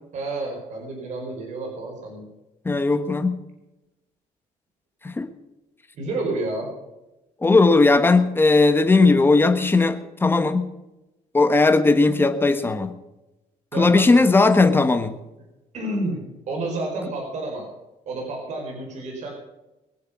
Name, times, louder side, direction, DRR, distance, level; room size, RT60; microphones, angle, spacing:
voice 1, 0.1-2.2 5.9-6.7 13.7-14.2 15.7-17.7 18.1-19.3, right 2 dB, 60° right, 1 dB, 4.7 m, -30 dB
voice 2, 2.6-3.4 5.0-5.3 7.4-10.7 11.3-13.0 13.8-15.2, left 3 dB, 15° left, 9 dB, 1.3 m, -17 dB
22.5 x 8.1 x 6.0 m, 0.99 s
cardioid pair, 135°, 14 cm